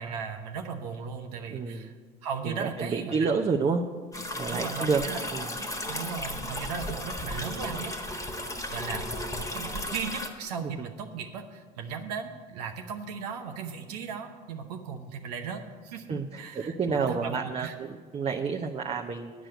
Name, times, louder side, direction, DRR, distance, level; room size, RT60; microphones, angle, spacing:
voice 1, 0.0-1.9 2.2-3.3 4.5-5.2 5.9-8.3 8.7-9.1 9.3-17.7, right 6 dB, 85° right, 4 dB, 0.8 m, -37 dB
voice 2, 1.5-1.9 2.4-3.8 4.3-5.0 5.3-5.5 10.6-10.9 16.1-19.3, right 5 dB, 30° right, 1 dB, 0.7 m, -29 dB
sound 1, 4.1-10.3, left 1 dB, 15° left, 1.4 m, -35 dB
8.9 x 6.2 x 8.1 m, 1.5 s
hypercardioid pair, 65°, 20 cm